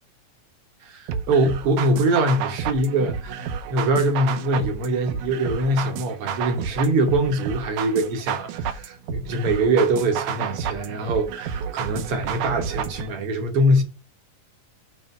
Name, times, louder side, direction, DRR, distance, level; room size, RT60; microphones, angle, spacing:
voice 1, 0.8-13.8, right 1 dB, 60° right, 1.6 m, -23 dB
sound 1, 1.1-13.1, right 8 dB, 80° right, 2.2 m, -31 dB
9.3 x 3.4 x 5.6 m
omnidirectional pair, 3.6 m